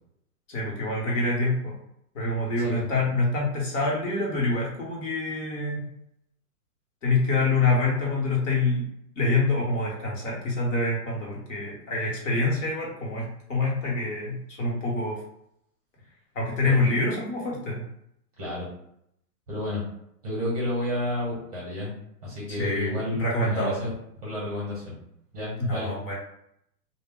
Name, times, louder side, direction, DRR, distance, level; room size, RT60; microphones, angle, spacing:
voice 1, 0.5-1.8 2.1-5.9 7.0-8.9 9.2-15.2 16.3-17.8 22.6-22.9 23.2-23.8 25.6-26.1, left 2 dB, 50° left, -4 dB, 1.1 m, -26 dB
voice 2, 18.4-18.7 19.5-19.8 20.2-22.0 22.2-23.9 24.2-25.0 25.3-25.9, left 1 dB, 25° right, -7 dB, 0.8 m, -31 dB
2.2 x 2.1 x 3.6 m, 0.75 s
hypercardioid pair, 170°, 47 cm